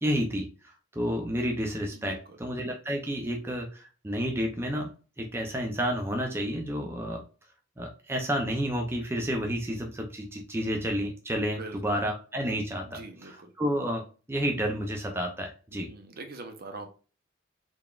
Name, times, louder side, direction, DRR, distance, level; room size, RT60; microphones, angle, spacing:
voice 1, 0.0-4.9 5.2-7.2 7.8-14.0 14.3-15.9, equal, 10° right, 1 dB, 0.5 m, -30 dB
voice 2, 1.9-2.4 11.4-12.0 12.8-13.5 15.7-16.9, right 3 dB, 50° right, 5 dB, 0.7 m, -43 dB
3.9 x 3.4 x 2.4 m, 0.36 s
head